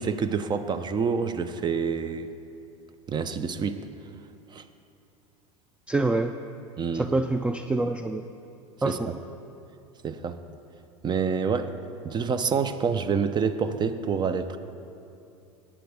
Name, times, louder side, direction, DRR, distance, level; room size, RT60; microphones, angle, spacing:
voice 1, 0.0-2.3 3.1-3.8 4.5-4.6 6.8-7.1 8.8-9.2 10.0-10.4 11.0-11.7 12.0-14.6, right 6 dB, 25° right, 10 dB, 0.7 m, -27 dB
voice 2, 5.9-6.4 6.9-8.2 8.8-9.1, right 2 dB, 5° right, 7 dB, 0.3 m, -26 dB
19.5 x 8.7 x 3.5 m, 2.7 s
hypercardioid pair, 95°, 17 cm